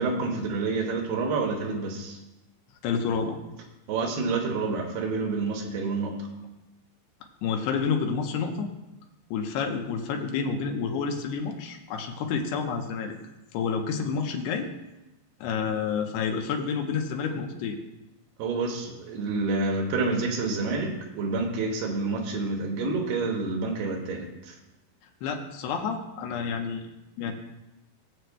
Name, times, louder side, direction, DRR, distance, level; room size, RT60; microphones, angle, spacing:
voice 1, 0.0-2.2 3.9-6.2 18.4-24.5, right 3 dB, 80° right, 0 dB, 3.0 m, -28 dB
voice 2, 2.8-3.4 7.4-8.7 9.3-13.2 13.5-14.7 15.4-17.8 25.2-26.9 27.2-27.3, left 6 dB, 85° left, 3 dB, 3.0 m, -29 dB
19.0 x 7.8 x 2.2 m, 0.99 s
omnidirectional pair, 4.6 m